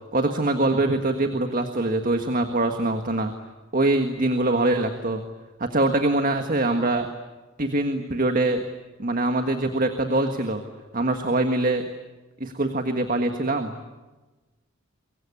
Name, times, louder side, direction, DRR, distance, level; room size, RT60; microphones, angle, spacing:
voice 1, 0.1-3.3 3.7-5.2 5.6-7.1 7.6-8.6 9.0-10.6 10.9-11.9 12.4-13.8, right 2 dB, 45° right, 6 dB, 1.6 m, -23 dB
24.5 x 23.0 x 9.8 m, 1.2 s
head